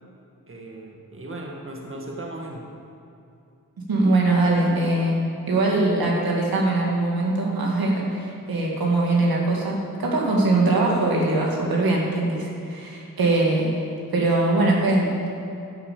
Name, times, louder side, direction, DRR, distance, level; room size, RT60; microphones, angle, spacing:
voice 1, 0.5-2.6, right 1 dB, 35° right, 0 dB, 1.7 m, -37 dB
voice 2, 3.9-5.2 5.5-13.8 14.1-15.3, right 2 dB, 75° right, -2 dB, 2.5 m, -22 dB
11.5 x 7.1 x 7.1 m, 2.7 s
cardioid pair, 50°, 36 cm